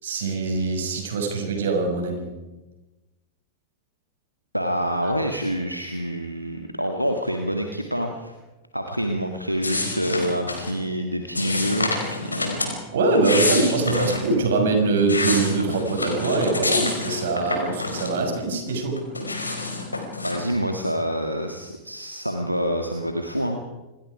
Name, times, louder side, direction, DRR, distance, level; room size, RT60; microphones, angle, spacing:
voice 1, 0.0-2.3 12.9-19.0, right 3 dB, 60° right, 3 dB, 6.2 m, -23 dB
voice 2, 4.5-8.3 8.7-12.7 13.7-14.3 20.2-23.6, equal, 90° right, 4 dB, 1.9 m, -27 dB
sound 1, 9.6-10.7 11.4-12.7 13.1-14.2 14.8-18.4 18.7-20.4, left 2 dB, 80° left, 5.0 m, -27 dB
28.0 x 21.0 x 5.0 m, 1.1 s
figure-of-eight pair, 90°, 0 cm